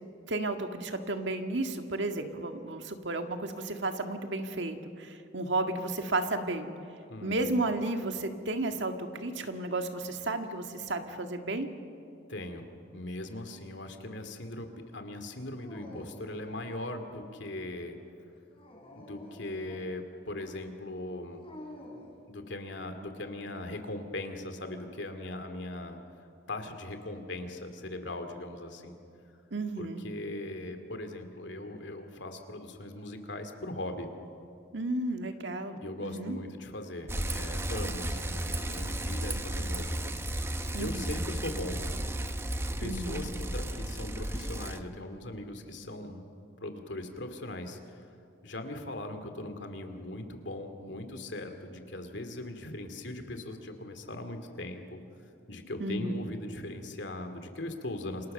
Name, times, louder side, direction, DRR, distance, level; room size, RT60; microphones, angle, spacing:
voice 1, 0.3-6.7 7.2-11.7 29.5-30.0 34.7-36.4 40.7-41.1 42.8-43.3 55.8-56.2, right 2 dB, 70° right, 6 dB, 1.9 m, -33 dB
voice 2, 7.1-7.6 12.3-12.7 12.9-18.0 19.0-21.5 22.3-26.0 26.5-29.0 29.8-34.1 35.8-40.4 40.8-41.8 42.8-46.2 46.6-48.1 48.4-55.0 55.5-58.3, left 1 dB, 70° left, 7 dB, 2.6 m, -39 dB
Dog, 15.6-16.5 18.5-19.9 21.4-22.2, left 1 dB, 30° left, 4.5 m, -48 dB
Bicycle, 37.1-44.8, right 1 dB, 15° right, 1.0 m, -34 dB
28.5 x 26.5 x 6.8 m, 2.5 s
head